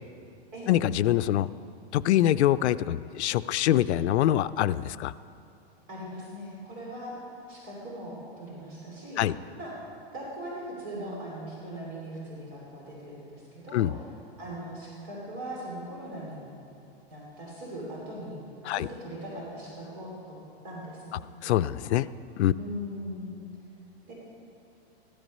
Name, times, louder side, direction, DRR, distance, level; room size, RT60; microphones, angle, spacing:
voice 1, 0.7-1.5 1.9-5.1 9.2-9.3 13.7-13.9 18.6-18.9 21.4-22.1 22.4-22.5, left 12 dB, 90° left, 16 dB, 0.5 m, -24 dB
voice 2, 5.9-7.2 7.5-9.2 9.6-9.8 10.1-13.9 14.4-16.4 17.1-18.4 18.7-20.4 20.6-21.2 22.6-23.5 24.0-24.1, equal, 35° right, -4 dB, 2.9 m, -40 dB
14.5 x 12.5 x 5.4 m, 2.7 s
supercardioid pair, 175°, 32 cm